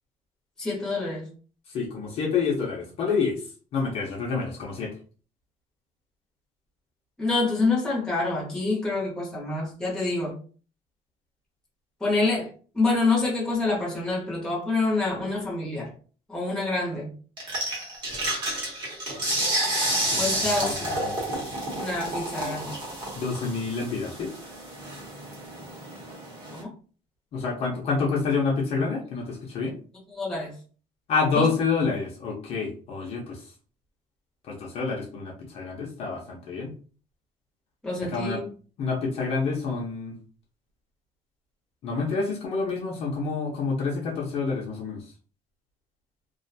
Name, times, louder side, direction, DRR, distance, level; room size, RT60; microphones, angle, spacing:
voice 1, 0.6-1.3 7.2-10.3 12.0-15.9 16.3-17.1 20.2-21.0 21.8-22.7 26.5-26.7 30.1-30.5 31.4-31.5 37.8-38.5, left 3 dB, 5° left, -4 dB, 0.8 m, -27 dB
voice 2, 1.7-5.0 20.1-21.2 23.2-24.3 27.3-29.8 31.1-33.5 34.4-36.7 38.0-38.4 38.8-40.2 41.8-45.1, left 4 dB, 45° left, -1 dB, 0.6 m, -28 dB
sound 1, 17.4-26.6, right 1 dB, 35° right, 0.9 m, -30 dB
2.4 x 2.2 x 2.6 m, 0.39 s
cardioid pair, 175°, 14 cm